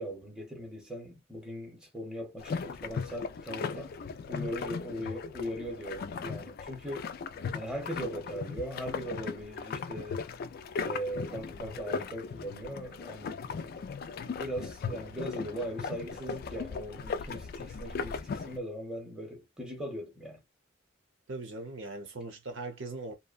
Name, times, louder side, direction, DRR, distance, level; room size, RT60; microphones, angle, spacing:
voice 1, 0.0-4.0 4.3-7.1 7.5-10.2 10.8-13.8 14.2-20.4, equal, 5° right, 0.8 m, -39 dB
sound 1, 2.4-18.6, left 5 dB, 50° left, 0.3 m, -38 dB
voice 2, 21.3-23.1, right 2 dB, 80° right, 0.8 m, -40 dB
2.7 x 2.1 x 2.4 m
head